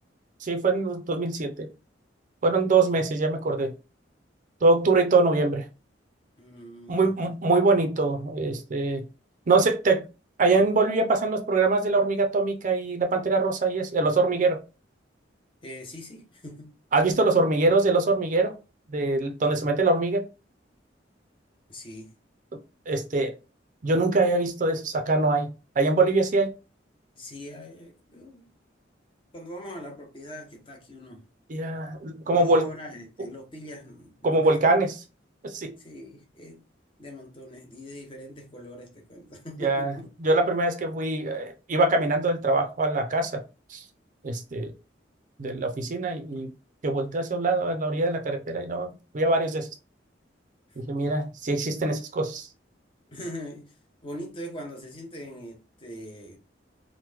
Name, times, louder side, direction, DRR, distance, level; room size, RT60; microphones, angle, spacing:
voice 1, 0.4-1.7 2.4-3.7 4.6-5.6 6.9-9.0 9.5-10.0 10.4-14.6 16.9-18.5 18.9-20.2 22.9-23.3 23.8-26.5 31.5-32.7 34.2-35.0 35.4-35.7 39.6-39.9 40.2-43.3 43.7-43.8 44.2-44.7 45.4-46.5 46.8-49.7 50.8-52.5, right 3 dB, 45° right, 0.5 m, -23 dB
voice 2, 6.4-7.1 15.6-16.7 21.7-22.1 27.1-28.5 29.3-31.2 32.3-34.7 35.8-36.6 37.0-40.1 53.1-53.7 54.0-56.4, equal, 30° left, 0.7 m, -42 dB
3.0 x 2.1 x 3.3 m
head